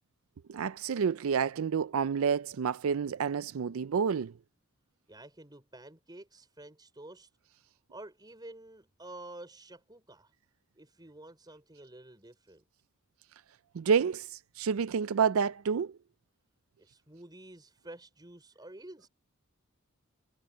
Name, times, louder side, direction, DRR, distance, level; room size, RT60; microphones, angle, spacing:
voice 1, 0.5-4.3 13.7-15.9, right 6 dB, 80° right, 0.4 m, -29 dB
voice 2, 5.1-7.3 7.9-10.3 10.7-12.6 16.8-19.1, right 1 dB, 20° right, 4.9 m, -50 dB
head